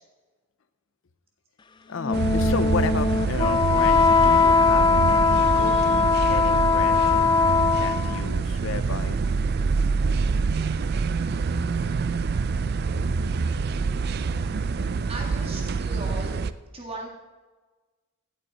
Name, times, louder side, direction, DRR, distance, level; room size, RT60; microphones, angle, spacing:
voice 1, 1.9-9.2, left 5 dB, 70° left, 11 dB, 0.6 m, -33 dB
Wind instrument woodwind instrument, 2.0-8.2, left 5 dB, 20° left, 0.3 m, -20 dB
sound 1, 2.1-16.5, right 4 dB, 50° right, 0.4 m, -26 dB
voice 2, 15.1-16.4 16.7-17.1, right 2 dB, 30° right, -1 dB, 1.9 m, -37 dB
16.0 x 8.0 x 4.1 m, 1.3 s
head